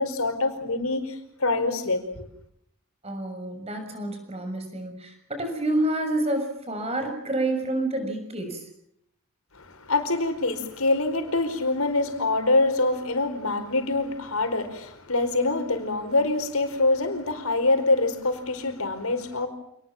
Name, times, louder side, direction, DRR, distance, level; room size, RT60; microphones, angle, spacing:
voice 1, 0.0-2.3 9.5-19.5, left 2 dB, 80° left, 5.0 m, -25 dB
voice 2, 3.0-8.7, right 1 dB, 30° right, 6.5 m, -28 dB
28.0 x 20.0 x 7.4 m
head